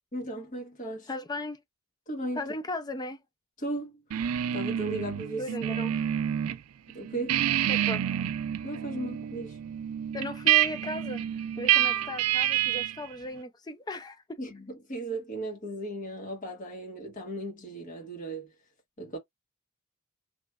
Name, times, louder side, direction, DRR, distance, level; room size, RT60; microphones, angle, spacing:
voice 1, 0.1-1.1 2.1-2.5 3.6-5.5 6.9-7.5 8.6-9.6 14.4-18.5 19.0-19.2, right 1 dB, 40° left, 1.6 m, -36 dB
voice 2, 1.1-1.6 2.4-3.2 5.4-6.1 7.7-8.1 10.1-11.2 11.6-14.4, left 2 dB, 20° left, 0.5 m, -36 dB
sound 1, 4.1-6.6 6.9-13.1, right 11 dB, 85° right, 0.4 m, -28 dB
3.1 x 3.1 x 2.3 m
head